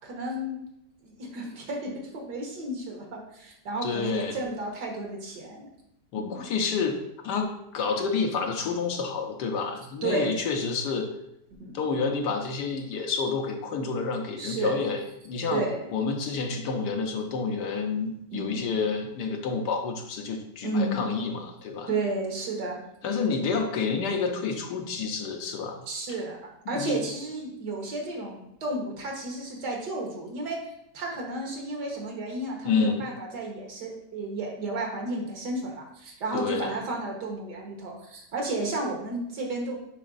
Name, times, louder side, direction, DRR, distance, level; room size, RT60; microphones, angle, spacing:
voice 1, 0.0-0.6 1.0-5.7 6.2-6.5 10.0-10.4 11.6-11.8 14.3-14.8 15.5-15.8 18.3-18.6 20.6-21.0 21.9-22.8 25.9-26.4 26.7-30.6 30.9-39.8, right 2 dB, 80° right, 0 dB, 1.9 m, -32 dB
voice 2, 3.8-4.4 6.1-7.0 7.2-11.1 11.7-15.7 15.9-21.9 23.0-25.8 26.7-27.0 32.6-33.0 36.3-36.7, left 4 dB, 80° left, 3 dB, 1.4 m, -29 dB
9.3 x 4.0 x 2.6 m, 0.79 s
omnidirectional pair, 1.8 m